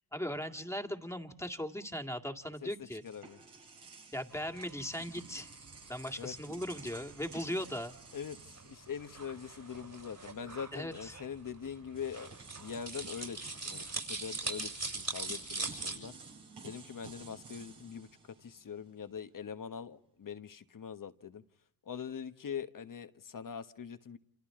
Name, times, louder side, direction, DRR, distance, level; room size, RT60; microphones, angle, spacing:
voice 1, 0.1-3.0 4.1-5.5 5.9-8.0 10.7-11.2, equal, 5° left, 5 dB, 2.1 m, -38 dB
sound 1, 2.5-9.7 10.0-10.2 11.3-11.4 11.9-19.0, right 4 dB, 70° right, 4.3 m, -54 dB
voice 2, 3.0-3.4 6.2-6.3 8.1-8.4 8.7-13.4 13.6-16.1 16.6-18.1 18.4-21.4 21.9-24.2, left 7 dB, 50° left, 10 dB, 1.3 m, -43 dB
sound 2, 4.3-16.0, right 3 dB, 55° right, 7.9 m, -43 dB
28.5 x 27.5 x 3.8 m, 0.71 s
supercardioid pair, 40°, 40 cm